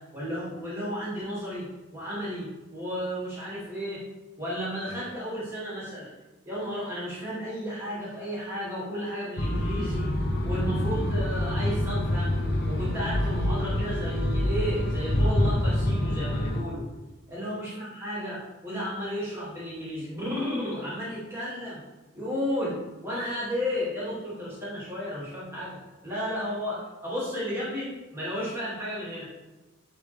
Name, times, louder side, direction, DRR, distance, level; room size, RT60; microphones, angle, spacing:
voice 1, 0.1-4.0 4.4-6.1 6.5-12.3 12.7-16.9 17.3-21.8 22.1-29.2, equal, 10° right, -9 dB, 2.3 m, -33 dB
sound 1, 9.4-16.6, left 1 dB, 50° left, 0.8 m, -26 dB
10.5 x 3.6 x 3.4 m, 1.2 s
head